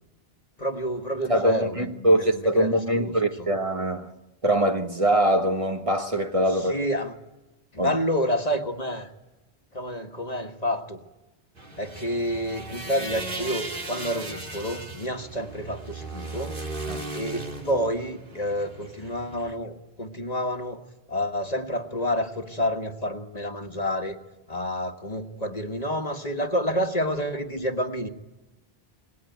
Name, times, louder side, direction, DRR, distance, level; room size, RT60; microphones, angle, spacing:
voice 1, 0.6-3.1 3.4-3.5 6.6-7.1 7.7-9.1 9.7-11.0 11.8-16.6 17.1-20.8 21.1-24.2 24.5-28.1, equal, 40° left, 1.6 m, -29 dB
voice 2, 1.3-4.1 4.4-6.8 7.8-8.0 16.9-17.1, right 1 dB, 35° right, 1.5 m, -23 dB
sound 1, 11.6-19.6, right 2 dB, 55° right, 2.9 m, -37 dB
27.0 x 21.0 x 9.4 m
omnidirectional pair, 1.0 m